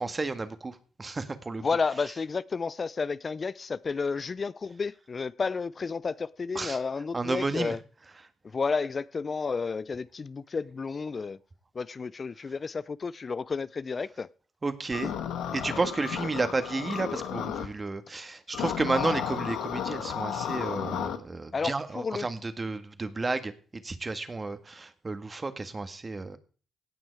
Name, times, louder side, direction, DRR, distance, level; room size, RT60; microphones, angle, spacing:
voice 1, 0.0-1.6 6.6-6.8 7.1-7.7 14.6-15.1 15.5-26.4, right 3 dB, 35° right, 1.8 m, -32 dB
voice 2, 1.6-7.8 8.4-11.4 11.7-14.3 21.5-22.3, left 4 dB, 45° left, 0.5 m, -31 dB
sound 1, 14.9-17.7 18.5-21.2, left 9 dB, 80° left, 1.3 m, -33 dB
18.0 x 6.2 x 4.7 m
supercardioid pair, 50°, 0 cm